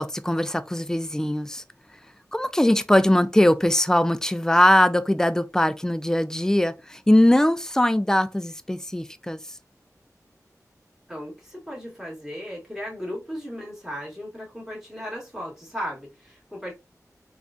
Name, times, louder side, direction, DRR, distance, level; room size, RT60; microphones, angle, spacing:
voice 1, 0.0-1.6 2.3-9.4, left 1 dB, 10° left, 0.3 m, -21 dB
voice 2, 11.1-16.7, equal, 5° right, 1.8 m, -36 dB
3.5 x 2.4 x 2.5 m
wide cardioid pair, 60°, 6 cm